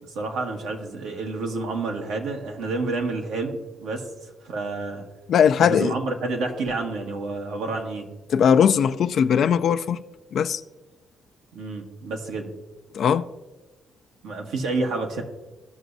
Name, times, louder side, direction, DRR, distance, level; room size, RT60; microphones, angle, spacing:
voice 1, 0.1-5.0 5.6-8.1 11.5-12.5 14.2-15.2, right 3 dB, 85° right, 1.5 m, -29 dB
voice 2, 5.3-6.0 8.3-10.0 10.3-10.6 12.9-13.3, left 8 dB, 65° left, 0.3 m, -19 dB
16.0 x 6.0 x 2.7 m
cardioid pair, 90°, 0 cm